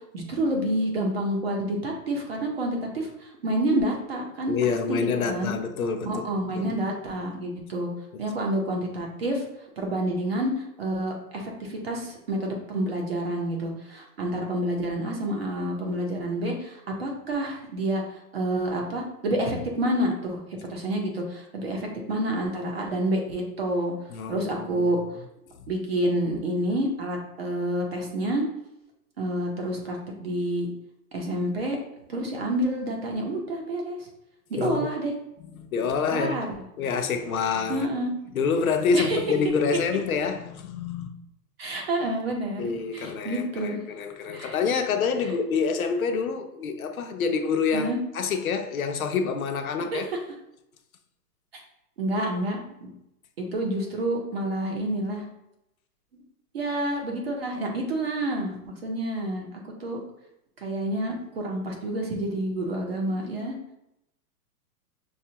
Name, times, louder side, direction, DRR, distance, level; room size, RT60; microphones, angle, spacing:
voice 1, 0.1-5.5 6.0-7.9 8.2-9.4 9.8-20.4 20.7-23.9 24.3-25.0 25.7-28.4 29.2-30.7 31.1-31.8 32.1-34.1 34.5-35.1 36.1-36.6 37.7-38.1 38.9-39.2 41.6-43.8 44.3-44.6 45.2-45.3 47.7-48.0 49.9-50.2 51.5-51.6 52.0-52.9 53.4-55.2 56.5-59.5 59.8-60.0 60.6-63.5, right 1 dB, 40° right, 0.7 m, -28 dB
voice 2, 4.5-6.2 6.5-6.7 24.1-24.9 34.6-34.9 35.6-36.4 36.8-37.9 38.3-41.1 42.6-50.1, left 5 dB, 60° left, 0.6 m, -27 dB
6.2 x 2.4 x 2.8 m
hypercardioid pair, 180°, 48 cm